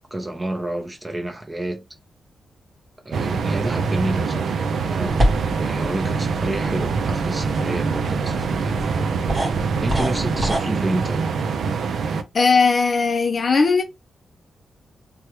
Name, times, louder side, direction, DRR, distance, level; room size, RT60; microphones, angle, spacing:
voice 1, 0.0-1.8 3.0-8.8 9.8-11.2, right 1 dB, 15° right, 0.7 m, -29 dB
sound 1, 3.1-12.2, right 5 dB, 70° right, 0.4 m, -24 dB
sound 2, 5.1-10.6, equal, 35° right, 1.4 m, -27 dB
voice 2, 12.3-13.8, left 4 dB, 40° left, 0.5 m, -18 dB
3.2 x 2.3 x 2.9 m
wide cardioid pair, 135°, 0 cm